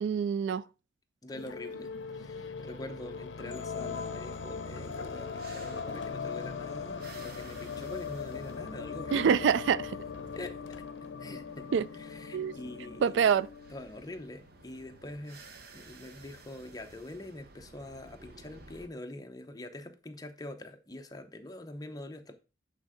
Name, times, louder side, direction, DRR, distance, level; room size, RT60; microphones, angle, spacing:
voice 1, 0.0-0.7 9.1-9.9 11.7-11.9 12.3-12.5 13.0-13.5, right 7 dB, 75° right, 0.3 m, -26 dB
voice 2, 1.2-9.5 10.3-11.7 11.9-13.2 13.7-15.4 15.7-22.3, left 1 dB, 20° left, 0.8 m, -44 dB
sound 1, 1.3-14.2, left 5 dB, 85° left, 0.6 m, -40 dB
sound 2, 4.3-18.9, right 3 dB, 55° right, 0.9 m, -55 dB
8.0 x 3.7 x 4.9 m
head